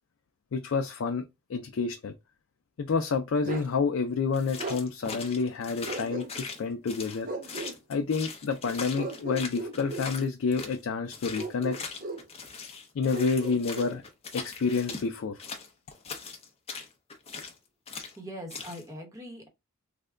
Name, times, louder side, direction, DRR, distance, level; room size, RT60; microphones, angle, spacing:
voice 1, 0.5-1.2 1.5-2.1 2.8-7.3 7.9-11.8 12.9-14.0 14.3-15.4, left 4 dB, 70° left, 0.4 m, -29 dB
Bark, 3.4-3.7 4.6-4.8 5.9-6.6 7.2-7.8 9.0-10.1 11.4-12.3 13.1-14.0, right 2 dB, 40° right, 0.6 m, -36 dB
sound 1, 4.3-10.8 11.1-15.1 15.4-17.6 17.9-18.2 18.5-18.8, left 5 dB, 30° left, 0.6 m, -40 dB
voice 2, 18.2-19.5, equal, 15° right, 1.0 m, -41 dB
3.4 x 2.1 x 3.6 m
head